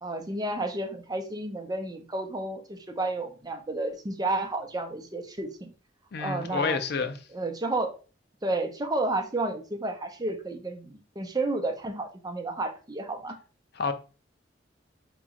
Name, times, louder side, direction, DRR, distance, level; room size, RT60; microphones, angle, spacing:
voice 1, 0.0-5.7 6.2-6.8 7.3-7.9 8.4-13.4, right 2 dB, 20° right, 0.7 m, -31 dB
voice 2, 6.1-7.1 13.8-13.9, left 4 dB, 60° left, 0.5 m, -28 dB
4.1 x 3.0 x 3.7 m
head